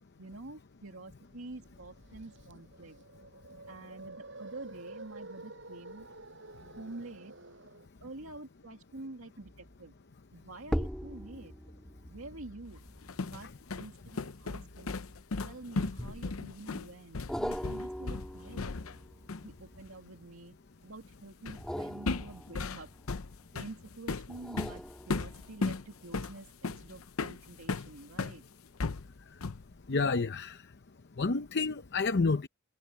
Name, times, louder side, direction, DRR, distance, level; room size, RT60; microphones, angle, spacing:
voice 1, 0.2-3.0 3.7-6.1 6.8-7.3 8.0-9.9 10.3-11.5 12.1-12.8 13.2-13.5 13.7-15.0 15.4-18.8 19.4-20.6 20.8-22.9 23.5-28.4, right 2 dB, 85° right, 2.2 m, -48 dB
sound 1, 1.3-7.9, right 2 dB, 60° right, 6.0 m, -50 dB
sound 2, 9.4-9.8 10.6-15.3 16.0-16.6 17.3-20.3 21.5-23.6 24.3-25.7 26.2-26.3, equal, 5° left, 1.8 m, -41 dB
sound 3, 12.8-19.0 19.3-19.5 21.5-21.7 22.1-28.4 28.8-29.7, left 3 dB, 90° left, 0.8 m, -36 dB
voice 2, 29.9-30.6 31.2-32.5, left 4 dB, 55° left, 0.7 m, -29 dB
head